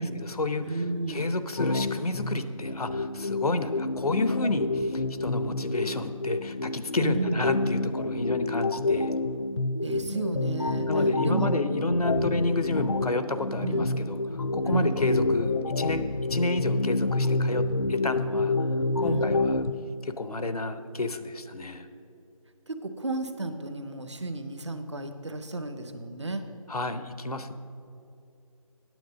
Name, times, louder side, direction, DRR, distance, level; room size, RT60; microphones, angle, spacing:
voice 1, 0.0-0.8 1.1-9.1 10.9-18.6 19.0-19.6 20.0-21.9 26.7-27.5, left 2 dB, 85° left, 10 dB, 0.8 m, -30 dB
voice 2, 0.6-1.3 7.0-7.4 9.8-11.6 12.1-12.3 13.6-13.9 14.7-15.0 19.0-19.4 22.7-26.4, right 2 dB, 50° right, 8 dB, 0.8 m, -32 dB
sound 1, 1.6-19.7, left 2 dB, 50° left, 0.4 m, -28 dB
9.2 x 7.4 x 6.3 m, 2.7 s
figure-of-eight pair, 175°, 19 cm